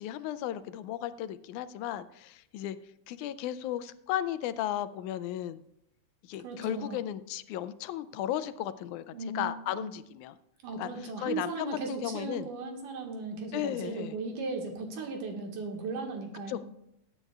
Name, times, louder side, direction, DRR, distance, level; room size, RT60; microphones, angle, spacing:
voice 1, 0.0-2.8 3.1-5.6 6.2-10.4 10.8-12.5 13.5-14.2 16.5-16.6, left 12 dB, 85° left, 13 dB, 1.9 m, -35 dB
voice 2, 6.4-7.0 9.1-9.9 10.6-16.6, right 3 dB, 90° right, 2 dB, 3.0 m, -37 dB
20.0 x 9.3 x 2.4 m, 0.81 s
omnidirectional pair, 3.5 m